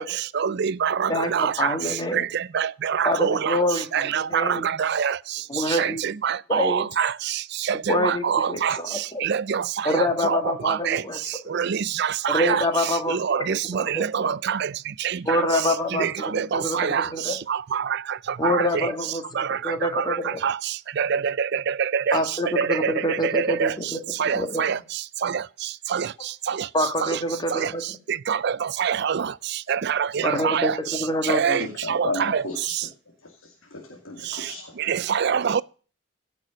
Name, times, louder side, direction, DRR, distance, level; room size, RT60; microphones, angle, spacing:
voice 1, 0.4-1.7 2.5-3.6 3.9-5.1 5.8-7.1 7.9-8.8 9.2-9.6 9.9-10.4 10.6-11.0 11.5-12.6 13.2-14.6 16.0-17.1 17.7-17.8 18.4-18.6 19.4-19.5 20.0-20.1 20.4-20.5 21.0-21.5 21.9-22.2 22.6-22.7 23.2-23.7 24.2-24.8 25.2-25.3 25.9-26.1 28.3-28.5 28.8-29.3 29.7-30.7 31.3-31.6 31.9-32.4 34.9-35.6, right 7 dB, 55° right, 0.4 m, -24 dB
voice 2, 1.1-2.3 3.0-4.6 5.5-6.0 6.5-6.8 7.9-9.3 9.8-11.2 11.4-11.6 12.3-13.2 13.5-13.6 13.9-14.3 15.2-16.1 16.3-17.4 18.4-20.4 22.1-24.0 24.3-24.6 26.7-27.8 30.2-31.6, left 1 dB, 20° left, 1.7 m, -26 dB
voice 3, 31.5-32.9 33.2-34.9 35.3-35.4, left 2 dB, 75° left, 2.1 m, -35 dB
15.5 x 6.0 x 5.2 m
head